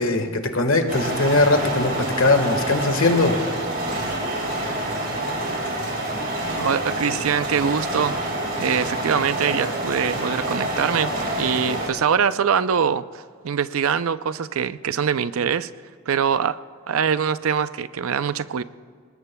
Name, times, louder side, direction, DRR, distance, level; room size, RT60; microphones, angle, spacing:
voice 1, 0.0-3.4, left 2 dB, 75° left, 6 dB, 1.5 m, -20 dB
sound 1, 0.9-11.9, right 1 dB, 45° right, 4.1 m, -27 dB
voice 2, 6.6-8.2 8.6-15.7 16.1-16.6 16.9-18.6, right 7 dB, 85° right, 14 dB, 0.5 m, -23 dB
29.0 x 19.0 x 2.3 m, 2.1 s
head